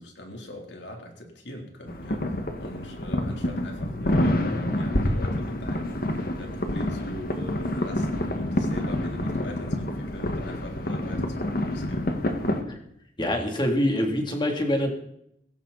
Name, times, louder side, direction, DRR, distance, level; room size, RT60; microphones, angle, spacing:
voice 1, 0.0-12.1, left 1 dB, 80° left, 3.6 m, -41 dB
sound 1, 1.9-12.6, left 1 dB, 55° left, 1.9 m, -27 dB
voice 2, 13.2-14.9, left 1 dB, 25° left, 3.0 m, -24 dB
17.0 x 16.0 x 4.2 m
head